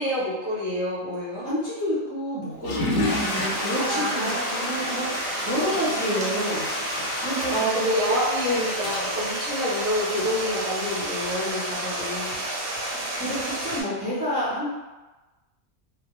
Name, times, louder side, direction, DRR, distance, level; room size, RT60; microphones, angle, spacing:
voice 1, 0.0-1.5 3.9-4.8 5.7-6.5 7.0-7.2 7.5-12.3, equal, 40° left, -11 dB, 0.6 m, -28 dB
voice 2, 1.4-7.6 12.9-14.7, equal, 25° right, -11 dB, 0.6 m, -29 dB
Water / Toilet flush, 2.6-10.3, left 2 dB, 80° left, 0.9 m, -31 dB
Stream, 3.1-13.8, right 1 dB, 85° right, 1.0 m, -31 dB
2.2 x 2.1 x 2.9 m, 1.2 s
omnidirectional pair, 1.3 m